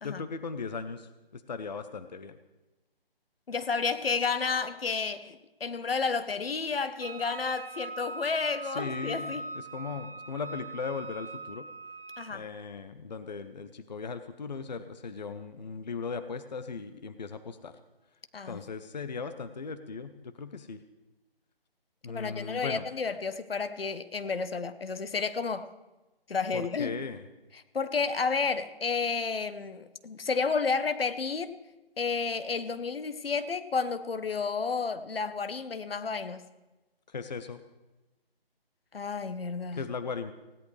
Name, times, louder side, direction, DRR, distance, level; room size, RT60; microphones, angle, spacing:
voice 1, 0.0-2.4 8.6-11.7 12.3-17.8 18.5-20.8 22.0-22.9 26.5-27.2 37.1-37.6 39.8-40.3, left 5 dB, 45° left, 11 dB, 0.7 m, -38 dB
voice 2, 3.5-9.4 12.2-12.5 18.3-18.6 22.1-25.7 26.3-26.9 27.5-31.6 32.0-36.4 38.9-39.8, left 5 dB, 70° left, 12 dB, 1.0 m, -31 dB
Wind instrument woodwind instrument, 7.0-12.4, right 3 dB, 65° right, 1.3 m, -41 dB
19.5 x 16.5 x 3.3 m, 1.1 s
figure-of-eight pair, 165°, 30 cm